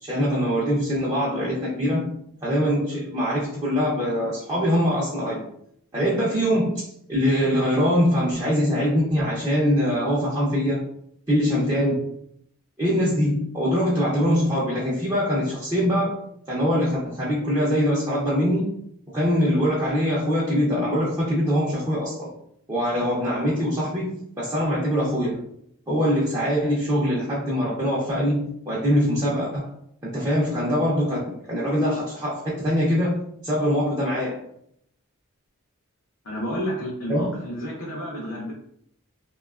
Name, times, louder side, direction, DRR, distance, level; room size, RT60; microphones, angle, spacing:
voice 1, 0.0-5.4 5.9-10.8 11.3-12.0 12.8-16.2 16.5-18.7 19.1-22.3 22.7-25.4 25.9-29.7 30.0-34.4 37.1-37.3, equal, 15° right, -8 dB, 0.5 m, -23 dB
voice 2, 36.2-38.5, equal, 65° left, -4 dB, 0.5 m, -30 dB
2.8 x 2.2 x 2.3 m, 0.72 s
head